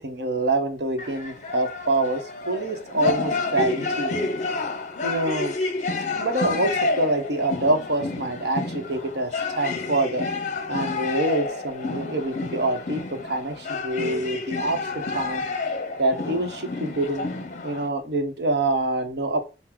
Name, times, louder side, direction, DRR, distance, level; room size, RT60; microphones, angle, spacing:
voice 1, 0.0-4.1 5.0-5.5 6.1-10.2 10.7-15.4 16.0-17.3 17.6-19.4, right 2 dB, 70° right, 5 dB, 0.8 m, -26 dB
sound 1, 1.0-17.9, left 3 dB, 45° left, 0.6 m, -29 dB
5.9 x 2.0 x 3.7 m, 0.31 s
head